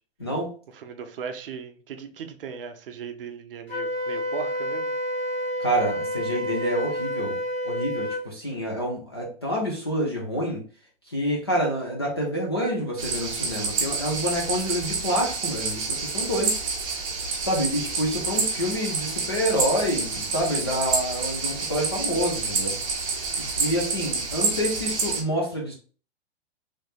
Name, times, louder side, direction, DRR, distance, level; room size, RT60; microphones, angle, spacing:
voice 1, 0.2-0.5 5.6-7.4 7.6-10.6 11.1-16.6 17.4-22.8 23.6-25.7, equal, 25° left, 0.3 m, -27 dB
voice 2, 0.7-4.9 17.7-17.9 18.3-18.7, right 6 dB, 55° right, 0.6 m, -38 dB
Wind instrument woodwind instrument, 3.7-8.2, equal, 70° left, 1.3 m, -29 dB
sound 1, 13.0-25.2, right 4 dB, 30° right, 0.8 m, -28 dB
3.2 x 3.1 x 2.3 m
hypercardioid pair, 175°, 33 cm